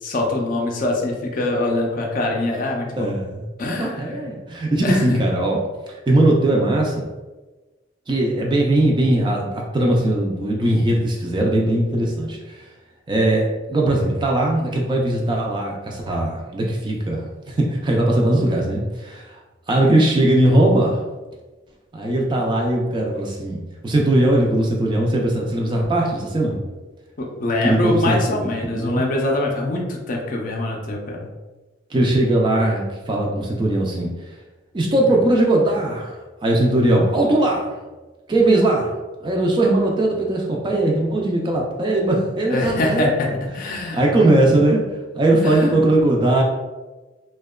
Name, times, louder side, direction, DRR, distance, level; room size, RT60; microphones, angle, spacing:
voice 1, 0.0-3.1 3.6-4.3 4.8-5.2 27.2-31.3 42.5-44.0 45.4-45.7, left 2 dB, 45° left, 0 dB, 0.4 m, -24 dB
voice 2, 2.9-5.6 6.1-7.1 8.1-12.6 13.1-19.4 19.7-21.0 21.9-26.6 27.6-28.5 28.7-29.0 31.9-34.1 34.7-37.7 38.3-39.0 39.2-43.3 43.9-44.8 45.1-46.4, right 1 dB, 25° right, -1 dB, 0.3 m, -19 dB
2.7 x 2.2 x 2.2 m, 1.2 s
head